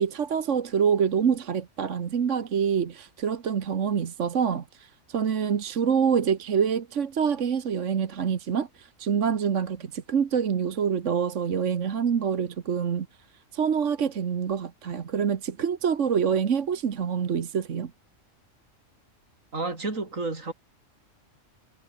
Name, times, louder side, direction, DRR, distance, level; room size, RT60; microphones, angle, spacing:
voice 1, 0.0-13.1 13.5-17.9, right 7 dB, 70° right, 1.5 m, -26 dB
voice 2, 19.5-20.5, right 3 dB, 85° right, 4.3 m, -30 dB
omnidirectional pair, 1.3 m